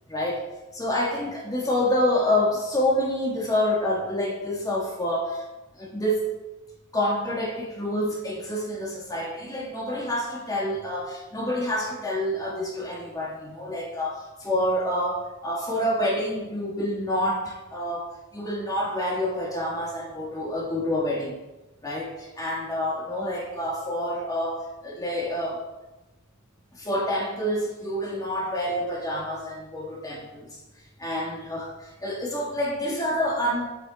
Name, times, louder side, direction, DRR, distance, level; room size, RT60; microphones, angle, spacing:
voice 1, 0.1-0.4 0.7-5.4 5.7-6.3 6.9-21.4 21.8-25.6 26.8-30.5 31.0-33.7, left 1 dB, 15° left, -3 dB, 1.4 m, -27 dB
7.3 x 4.2 x 3.9 m, 1.0 s
head